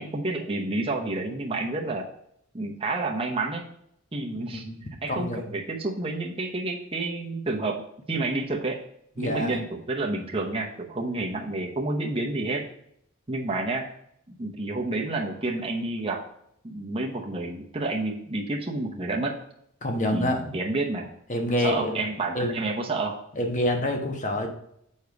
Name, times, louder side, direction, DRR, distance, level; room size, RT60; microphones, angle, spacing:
voice 1, 0.0-2.1 2.5-3.7 4.1-4.7 5.0-7.8 8.1-8.8 9.2-12.7 13.3-13.9 14.4-16.2 16.6-19.4 20.1-21.1 21.6-23.2, right 2 dB, 25° right, 0 dB, 0.8 m, -29 dB
voice 2, 4.3-4.8 5.1-5.5 9.2-9.6 19.8-20.4 21.3-22.0 22.3-22.6 23.3-24.5, left 1 dB, 35° left, 3 dB, 1.1 m, -27 dB
6.9 x 5.4 x 4.8 m, 0.72 s
head